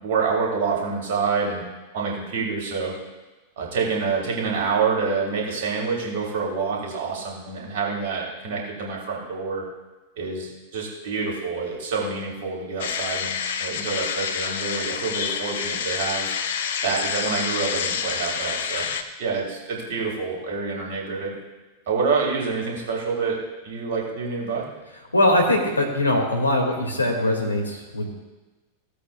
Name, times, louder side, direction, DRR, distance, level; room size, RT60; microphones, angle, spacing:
voice 1, 0.0-1.6 1.9-2.9 3.6-9.6 10.2-16.3 16.8-18.9 19.2-21.4 21.9-24.6, right 5 dB, 55° right, -2 dB, 3.2 m, -27 dB
sound 1, 12.8-19.0, left 7 dB, 60° left, 0.6 m, -28 dB
voice 2, 25.1-28.1, left 1 dB, 80° left, 1 dB, 1.9 m, -21 dB
16.5 x 8.3 x 2.2 m, 1.2 s
figure-of-eight pair, 90°, 0 cm